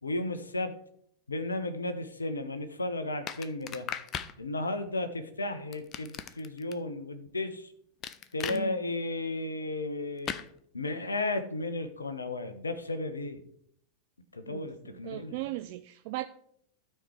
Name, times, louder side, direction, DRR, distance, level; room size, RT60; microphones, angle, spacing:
voice 1, 0.0-0.7 1.3-3.9 4.4-7.7 8.3-10.4 10.7-13.4 14.3-15.4, left 2 dB, 75° left, 0.9 m, -34 dB
sound 1, 3.3-4.3 5.7-6.7 8.0-8.6 10.3-10.5, left 9 dB, 30° left, 0.6 m, -37 dB
voice 2, 8.5-8.8 14.5-16.2, right 17 dB, 45° right, 0.4 m, -38 dB
12.5 x 4.5 x 4.9 m
figure-of-eight pair, 90°, 0 cm